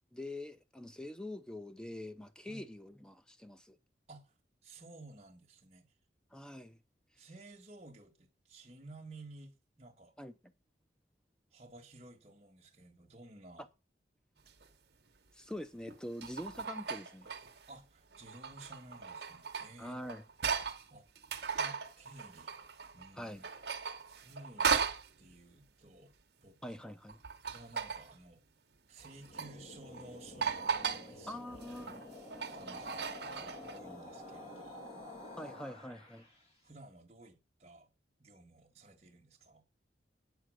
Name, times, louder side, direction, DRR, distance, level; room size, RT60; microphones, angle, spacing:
voice 1, 0.1-3.8 6.3-6.8 10.2-10.5 15.3-17.3 19.8-20.2 23.1-23.4 26.6-27.2 31.3-32.0 35.4-36.3, left 1 dB, 5° left, 0.5 m, -45 dB
voice 2, 4.6-5.9 7.2-10.1 11.5-13.7 17.7-20.0 20.9-21.1 21.6-22.5 22.9-23.5 24.2-24.8 25.2-26.8 27.5-28.4 28.9-32.0 32.5-34.8 35.4-35.5 36.6-37.9 38.2-39.6, right 2 dB, 35° right, 1.5 m, -55 dB
sound 1, 14.5-14.6 15.9-17.7 18.1-20.8 21.1-23.1 23.4-25.1 27.1-28.1 29.0-29.5 29.9-30.0 30.4-31.1 31.5-33.8, right 6 dB, 65° right, 1.0 m, -37 dB
sound 2, 29.0-36.4, left 1 dB, 35° left, 2.3 m, -50 dB
9.0 x 4.5 x 6.4 m
head